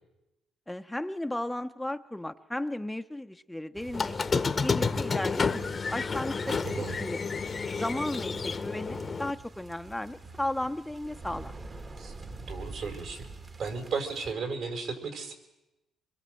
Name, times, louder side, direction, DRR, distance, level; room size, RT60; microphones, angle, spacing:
voice 1, 0.7-7.2 7.7-11.6, left 1 dB, 5° left, 8 dB, 0.8 m, -35 dB
sound 1, 3.7-14.3, right 3 dB, 35° right, 1.5 m, -46 dB
Squeak, 3.9-9.3, left 5 dB, 35° left, 1.0 m, -30 dB
voice 2, 6.5-6.9 12.0-12.1 12.4-13.3 13.6-15.3, right 5 dB, 70° right, 6 dB, 4.8 m, -35 dB
25.5 x 21.5 x 7.6 m, 0.95 s
cardioid pair, 90°, 0 cm